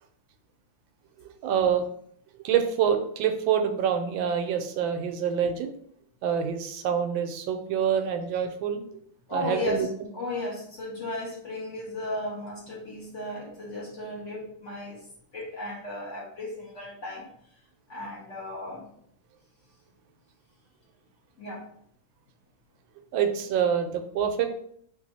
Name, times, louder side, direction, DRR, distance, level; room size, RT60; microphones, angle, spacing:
voice 1, 1.2-1.9 2.4-5.7 6.2-9.0 9.3-9.9 23.1-24.5, right 8 dB, 85° right, 7 dB, 1.3 m, -26 dB
voice 2, 9.3-9.9 10.1-15.1 15.3-17.2 17.9-18.9 21.4-21.6, left 1 dB, 45° left, -5 dB, 1.3 m, -35 dB
3.9 x 2.6 x 4.0 m, 0.67 s
omnidirectional pair, 2.1 m